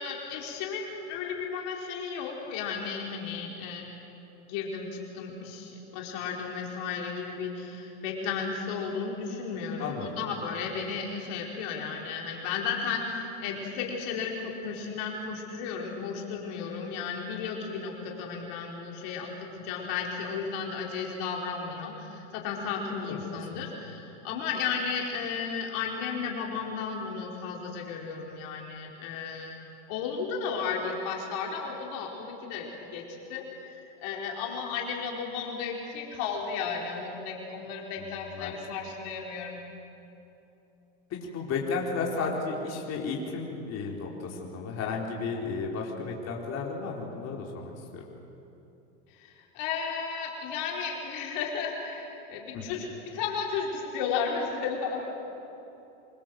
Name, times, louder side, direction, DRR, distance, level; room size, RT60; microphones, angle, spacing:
voice 1, 0.0-3.8 4.4-29.6 29.9-33.0 33.3-39.6 49.1-55.1, left 5 dB, 65° left, -1 dB, 4.6 m, -34 dB
voice 2, 38.0-38.5 41.1-48.0 52.5-52.6, left 4 dB, 45° left, -2 dB, 4.4 m, -33 dB
26.0 x 24.0 x 7.8 m, 2.9 s
hypercardioid pair, 100°, 35 cm